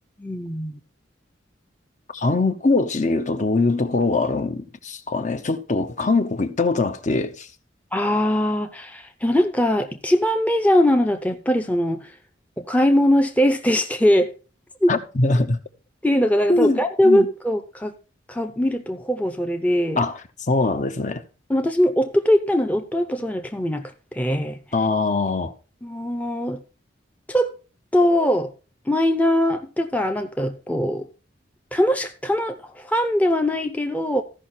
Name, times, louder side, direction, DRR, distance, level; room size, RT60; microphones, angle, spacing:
voice 1, 0.2-0.8 7.9-12.1 12.6-14.3 14.8-14.9 16.0-17.9 18.3-20.0 21.5-24.6 25.8-26.6 27.3-27.5 27.9-28.5 28.9-31.1 31.7-34.2, left 1 dB, 10° left, 0.7 m, -21 dB
voice 2, 2.1-7.5 14.9-15.6 16.5-17.3 20.0-21.2 24.7-25.5, left 3 dB, 40° left, 0.8 m, -22 dB
14.5 x 5.7 x 4.3 m
head